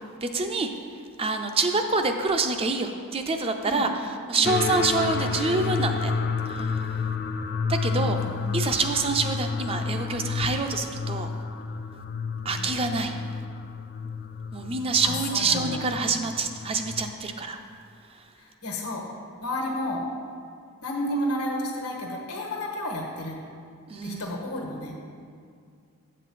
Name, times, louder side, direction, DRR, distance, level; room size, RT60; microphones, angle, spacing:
voice 1, 0.2-0.7 1.2-3.9 4.3-6.1 6.5-6.8 7.7-8.2 8.5-11.3 12.4-13.2 14.5-17.6 23.9-24.4, right 3 dB, 25° right, 6 dB, 0.4 m, -26 dB
voice 2, 4.4-5.3 7.9-8.6 15.0-15.9 18.4-19.0 19.4-20.0 20.8-23.4 24.0-24.9, left 1 dB, 90° left, -1 dB, 1.4 m, -32 dB
sound 1, 4.4-17.1, left 5 dB, 45° left, 0.3 m, -31 dB
7.7 x 7.4 x 4.1 m, 2.2 s
head